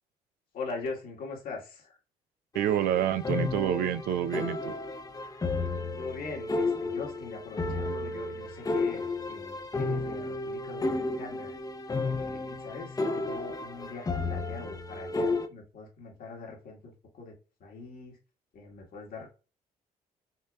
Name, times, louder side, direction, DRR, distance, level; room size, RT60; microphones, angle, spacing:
voice 1, 0.5-2.0 5.2-5.4 5.9-11.6 12.0-17.3 17.6-18.2 18.5-19.3, left 4 dB, 70° left, 1.5 m, -42 dB
sound 1, 2.5-15.5, left 3 dB, 25° left, 0.6 m, -32 dB
voice 2, 2.5-4.7, right 10 dB, 75° right, 0.4 m, -28 dB
5.6 x 2.2 x 2.3 m
supercardioid pair, 70°, 16 cm